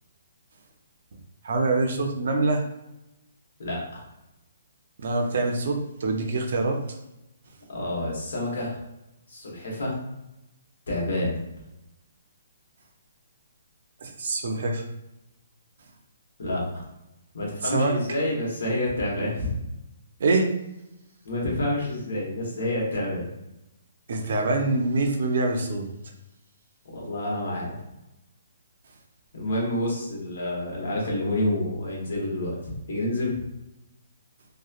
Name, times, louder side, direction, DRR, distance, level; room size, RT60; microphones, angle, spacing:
voice 1, 1.4-2.6 5.0-6.8 14.0-14.8 17.6-17.9 20.2-20.5 22.9-23.0 24.1-25.9, right 3 dB, 50° right, 2 dB, 0.5 m, -25 dB
voice 2, 3.6-4.0 7.7-8.8 9.3-9.9 10.9-11.4 16.4-16.8 17.3-19.6 21.2-23.3 26.9-27.7 29.3-33.5, left 1 dB, 60° left, -3 dB, 1.1 m, -28 dB
2.9 x 2.1 x 2.4 m, 0.93 s
hypercardioid pair, 175°, 0 cm